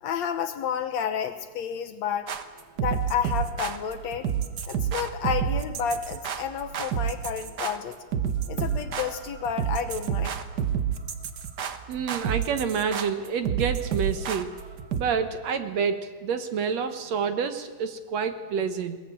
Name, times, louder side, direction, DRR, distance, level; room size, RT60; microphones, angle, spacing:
voice 1, 0.0-2.3 2.8-4.3 4.7-7.9 8.5-10.4, left 7 dB, 65° left, 9 dB, 2.0 m, -30 dB
sound 1, 2.3-15.0, right 8 dB, 80° right, 0.9 m, -29 dB
voice 2, 11.9-14.5 15.0-19.0, right 6 dB, 65° right, 9 dB, 2.1 m, -28 dB
20.5 x 20.0 x 9.0 m, 1.4 s
omnidirectional pair, 3.7 m